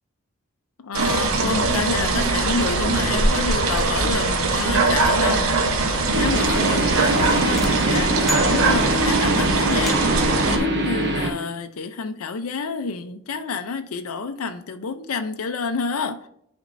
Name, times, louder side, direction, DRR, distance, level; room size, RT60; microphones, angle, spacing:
voice 1, 0.8-5.5 5.8-16.3, left 4 dB, 80° left, 0.5 m, -28 dB
sound 1, 0.9-10.6, right 3 dB, 75° right, 0.9 m, -21 dB
sound 2, 6.1-11.3, right 1 dB, 50° right, 1.1 m, -24 dB
sound 3, 7.6-9.2 9.9-10.4, left 1 dB, ahead, 0.4 m, -34 dB
10.0 x 4.3 x 2.6 m
head